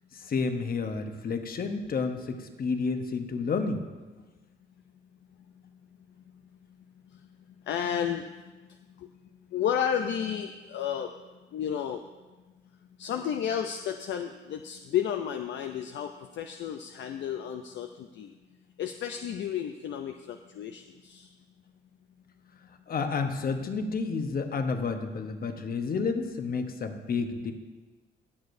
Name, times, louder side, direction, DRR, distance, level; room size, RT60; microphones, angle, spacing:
voice 1, 0.1-3.9 22.9-27.5, left 4 dB, 50° left, 6 dB, 1.0 m, -30 dB
voice 2, 7.7-8.3 9.0-9.1 9.5-11.1 11.5-12.0 13.0-18.3 18.8-21.3, left 9 dB, 65° left, 6 dB, 0.5 m, -32 dB
18.5 x 6.6 x 2.6 m, 1.2 s
cardioid pair, 90°, 20 cm